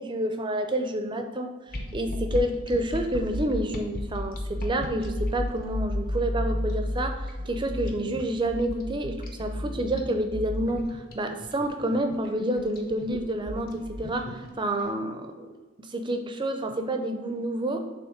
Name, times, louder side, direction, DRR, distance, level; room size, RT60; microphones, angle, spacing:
voice 1, 0.0-1.5 1.9-15.5 15.8-17.8, right 1 dB, 20° right, 6 dB, 0.5 m, -29 dB
sound 1, 1.7-14.8, left 1 dB, 40° left, 0.8 m, -33 dB
7.1 x 3.0 x 5.1 m, 1.3 s
head